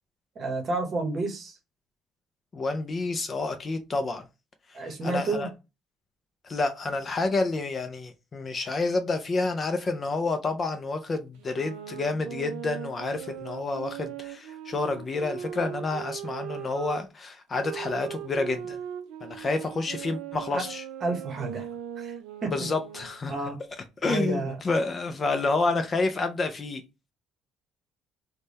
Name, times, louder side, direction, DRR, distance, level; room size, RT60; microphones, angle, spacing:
voice 1, 0.4-1.6 4.7-5.5 20.5-20.7 21.0-21.7 22.0-22.1 22.4-22.5 23.3-23.6 24.0-24.6, right 3 dB, 35° right, 0.9 m, -30 dB
voice 2, 2.5-4.2 4.7-5.5 6.4-18.8 19.2-20.8 22.5-23.3 24.0-26.8, left 3 dB, 25° left, 0.4 m, -29 dB
sound 1, 11.4-17.0 17.6-23.2, right 10 dB, 90° right, 0.5 m, -39 dB
3.4 x 2.1 x 4.0 m
cardioid pair, 160°, 0 cm